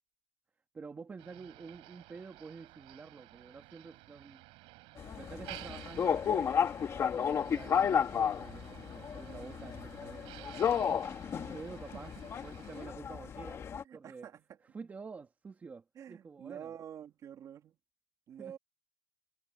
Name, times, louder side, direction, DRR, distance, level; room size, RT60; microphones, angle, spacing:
voice 1, 0.7-4.4 5.2-6.6 7.1-10.8 11.4-12.2 12.4-13.6 13.9-14.3 14.7-16.7 18.4-18.6, right 5 dB, 20° right, 2.2 m, -48 dB
Motor vehicle (road), 1.2-12.9, right 22 dB, 70° right, 6.2 m, -53 dB
sound 1, 5.0-13.8, left 7 dB, 30° left, 1.6 m, -33 dB
voice 2, 11.9-12.3 13.8-14.4 16.0-17.7 18.3-18.6, right 9 dB, 35° right, 2.4 m, -48 dB
cardioid pair, 155°, 9 cm